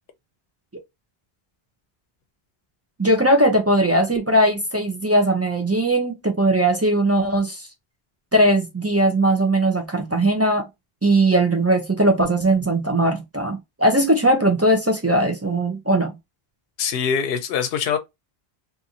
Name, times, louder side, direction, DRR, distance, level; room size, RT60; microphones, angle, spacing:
voice 1, 3.0-7.7 8.3-10.7 11.0-16.2, right 1 dB, 25° right, 0.3 m, -19 dB
voice 2, 16.8-18.0, left 7 dB, 75° left, 0.8 m, -23 dB
2.6 x 2.5 x 2.7 m
omnidirectional pair, 1.0 m